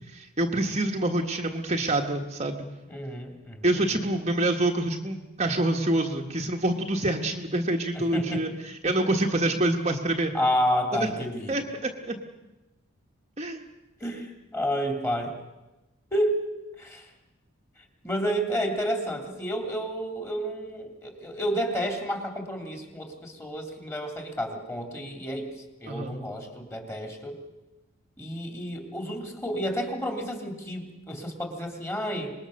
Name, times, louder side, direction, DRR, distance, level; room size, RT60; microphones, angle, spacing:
voice 1, 0.1-2.6 3.6-10.3 10.9-11.1 11.5-12.2 13.4-13.6 25.9-26.1, right 1 dB, 30° right, 2 dB, 1.4 m, -26 dB
voice 2, 2.9-3.7 7.9-8.5 8.8-9.2 10.3-11.5 14.0-15.3 16.1-16.4 16.8-17.1 17.8-27.3 28.2-32.3, equal, 10° left, 3 dB, 3.0 m, -30 dB
25.5 x 21.0 x 6.6 m, 1.1 s
head